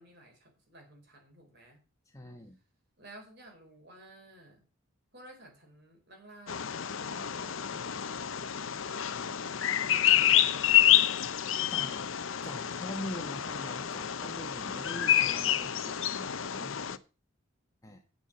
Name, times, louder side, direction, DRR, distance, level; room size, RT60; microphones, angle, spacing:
voice 1, 0.0-1.8 3.0-4.6 5.1-10.7, right 1 dB, 50° right, 2 dB, 4.5 m, -54 dB
voice 2, 2.1-2.6 11.7-12.1 12.4-16.7 17.8-18.0, equal, 15° left, 4 dB, 1.2 m, -43 dB
Bird vocalization bird call bird song, 6.5-17.0, left 11 dB, 70° left, 0.7 m, -28 dB
8.7 x 7.2 x 6.9 m, 0.33 s
head